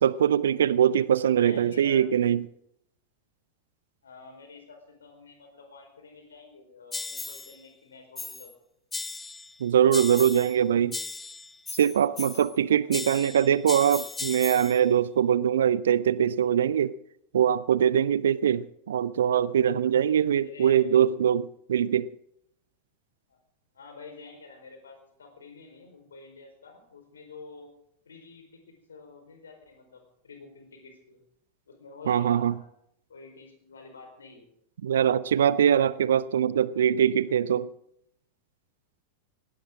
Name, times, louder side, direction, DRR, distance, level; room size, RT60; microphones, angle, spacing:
voice 1, 0.0-2.4 9.6-11.0 11.7-17.0 17.3-22.1 32.1-32.5 34.8-37.7, right 9 dB, 65° right, 0.6 m, -22 dB
voice 2, 1.3-2.0 4.0-8.5 12.8-13.4 20.4-20.9 23.3-23.4 23.7-27.7 28.1-31.2 31.7-32.7 33.1-34.5, left 4 dB, 70° left, 4.5 m, -49 dB
sound 1, 6.9-7.6 8.2-8.5 8.9-9.6 9.9-10.6 10.9-12.6 12.9-14.8, left 4 dB, 10° left, 0.7 m, -37 dB
19.5 x 16.5 x 3.8 m
figure-of-eight pair, 90°, 0 cm